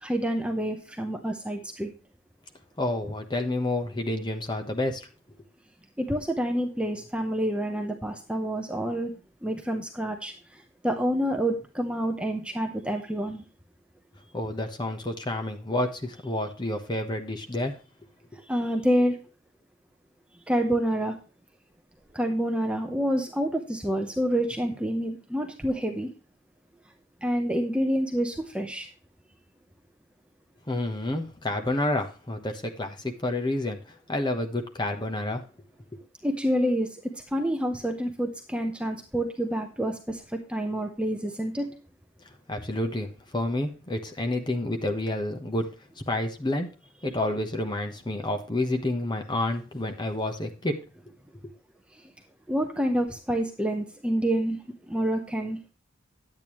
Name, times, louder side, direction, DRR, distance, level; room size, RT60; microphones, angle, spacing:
voice 1, 0.0-1.9 6.0-9.1 9.4-10.3 10.8-13.4 18.5-19.2 20.5-21.1 22.1-26.1 27.2-28.9 36.2-36.9 37.3-41.7 52.5-54.6 54.9-55.6, equal, 5° right, 3 dB, 0.8 m, -27 dB
voice 2, 2.8-5.0 14.3-17.8 30.7-33.8 34.1-35.4 42.5-45.7 46.1-46.7 47.0-50.8, left 1 dB, 20° left, 5 dB, 1.1 m, -29 dB
10.5 x 8.8 x 3.1 m, 0.34 s
head